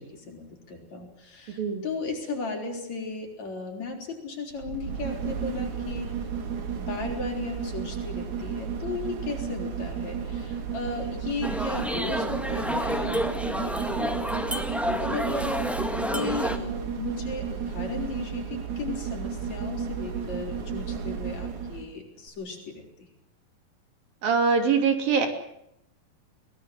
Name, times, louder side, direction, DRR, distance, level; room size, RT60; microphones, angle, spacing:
voice 1, 0.0-6.2 6.8-15.7 16.1-22.8, left 3 dB, 50° left, 1 dB, 6.1 m, -35 dB
sound 1, 4.5-21.9 22.3-22.4, right 7 dB, 60° right, 3.5 m, -33 dB
sound 2, 11.4-16.6, equal, ahead, 0.4 m, -29 dB
voice 2, 24.2-25.3, right 5 dB, 75° right, 6 dB, 4.6 m, -23 dB
23.0 x 20.0 x 8.0 m, 0.79 s
omnidirectional pair, 4.1 m